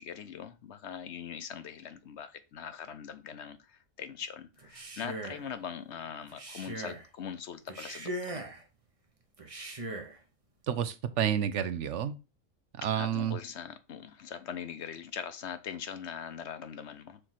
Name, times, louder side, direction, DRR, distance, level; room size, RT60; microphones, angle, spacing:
voice 1, 0.0-8.4 12.9-17.2, left 7 dB, 65° left, 11 dB, 0.9 m, -42 dB
Male speech man speaking, 4.6-5.5 6.3-7.1 7.7-8.6 9.4-10.2, right 1 dB, 30° right, 0.9 m, -40 dB
voice 2, 10.7-12.2 12.7-13.4, right 9 dB, 70° right, 13 dB, 1.0 m, -30 dB
6.7 x 3.1 x 5.6 m, 0.29 s
omnidirectional pair, 1.3 m